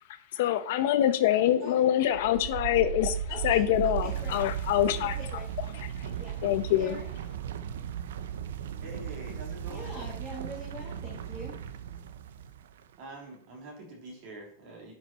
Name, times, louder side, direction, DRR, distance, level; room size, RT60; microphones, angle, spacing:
voice 1, 0.3-3.2 3.4-5.2 6.4-6.9, left 11 dB, 50° left, 10 dB, 1.0 m, -25 dB
sound 1, 2.0-12.8, right 9 dB, 85° right, 0.7 m, -36 dB
voice 2, 3.3-3.7 4.0-4.4 5.0-5.5 6.2-7.1 9.7-11.5, equal, 15° right, -4 dB, 2.3 m, -43 dB
voice 3, 8.8-10.0 13.0-14.9, right 1 dB, 35° right, -2 dB, 3.6 m, -45 dB
11.0 x 5.9 x 4.5 m, 0.64 s
supercardioid pair, 180°, 0 cm